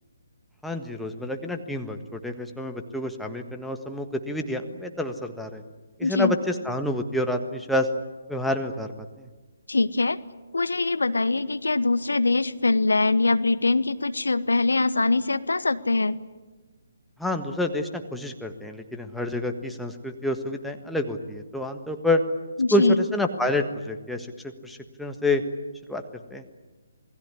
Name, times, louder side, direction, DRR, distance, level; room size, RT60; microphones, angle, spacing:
voice 1, 0.6-5.6 6.0-7.9 8.3-8.9 9.2-9.3 17.2-22.2 22.7-24.3 24.6-25.4 25.9-26.0 26.3-26.4, left 1 dB, ahead, 3 dB, 1.5 m, -28 dB
voice 2, 6.0-6.4 9.7-10.2 10.5-16.2 22.6-23.0, left 3 dB, 70° left, 15 dB, 1.0 m, -23 dB
27.5 x 20.0 x 9.7 m, 1.2 s
figure-of-eight pair, 140°, 0 cm